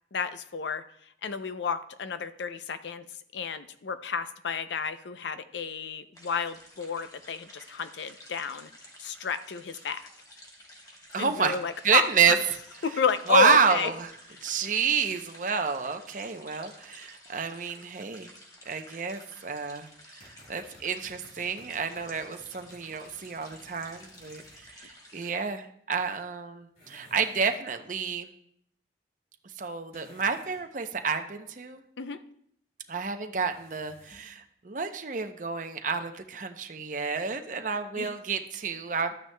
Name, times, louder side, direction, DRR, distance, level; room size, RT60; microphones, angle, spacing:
voice 1, 0.1-0.8 1.2-8.7 9.0-10.1 11.2-12.4 12.8-13.9 14.4-14.5 32.0-32.2 38.0-38.1, left 6 dB, 80° left, 11 dB, 0.5 m, -31 dB
sound 1, 6.1-25.3, left 1 dB, 20° left, 1.2 m, -52 dB
voice 2, 11.1-11.6 11.8-12.4 13.3-14.1 14.4-18.3 18.7-28.3 29.6-31.8 32.9-39.1, right 5 dB, 45° right, 6 dB, 0.6 m, -29 dB
sound 2, 19.9-24.9 26.8-27.6 29.9-30.7 33.4-34.3, left 1 dB, 55° left, 2.8 m, -56 dB
13.0 x 9.2 x 2.2 m, 0.69 s
head